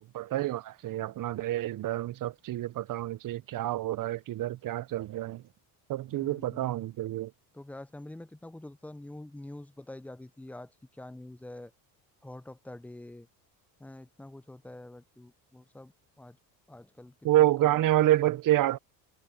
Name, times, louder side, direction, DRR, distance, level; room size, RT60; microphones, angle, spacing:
voice 1, 0.0-5.4 5.9-7.3 17.2-18.8, right 14 dB, 45° right, 0.7 m, -28 dB
voice 2, 6.1-6.7 7.5-11.7 12.2-13.3 13.8-16.4 16.7-18.1, left 1 dB, 5° left, 0.5 m, -46 dB
supercardioid pair, 85°, 45 cm